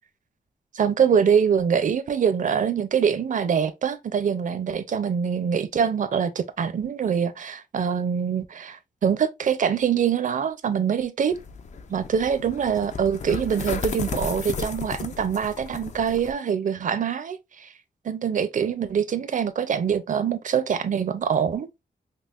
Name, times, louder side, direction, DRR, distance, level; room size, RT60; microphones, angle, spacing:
voice 1, 0.7-11.3 11.9-17.7 18.0-21.7, right 7 dB, 50° right, 0.4 m, -24 dB
sound 1, 11.3-16.3, left 5 dB, 45° left, 0.4 m, -34 dB
5.3 x 2.0 x 2.4 m
wide cardioid pair, 130°, 17 cm